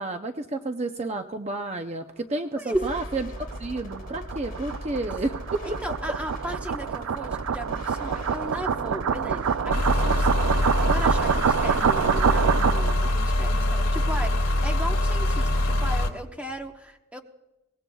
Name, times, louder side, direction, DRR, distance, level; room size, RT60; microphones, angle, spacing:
voice 1, 0.0-5.8, right 2 dB, 30° right, 5 dB, 0.6 m, -31 dB
sound 1, 2.7-11.5, left 1 dB, 45° left, 3.2 m, -39 dB
sound 2, 3.1-13.1, right 7 dB, 80° right, 0.4 m, -26 dB
voice 2, 5.6-17.2, equal, 5° right, 3 dB, 1.0 m, -36 dB
sound 3, 9.7-16.1, left 1 dB, 70° left, 2.3 m, -24 dB
23.5 x 19.5 x 2.3 m, 1.0 s
head